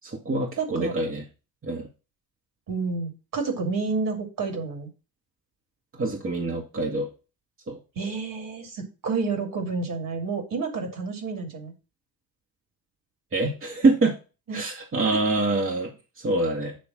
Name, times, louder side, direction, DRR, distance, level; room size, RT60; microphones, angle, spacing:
voice 1, 0.0-1.2 1.6-1.9 5.9-7.1 7.7-7.8 13.3-14.2 14.5-16.8, right 2 dB, 30° right, -1 dB, 1.7 m, -25 dB
voice 2, 0.6-0.9 2.7-4.9 8.0-11.7 14.5-14.6, right 4 dB, 45° right, 4 dB, 2.5 m, -30 dB
8.8 x 3.2 x 6.1 m, 0.32 s
figure-of-eight pair, 50°, 45 cm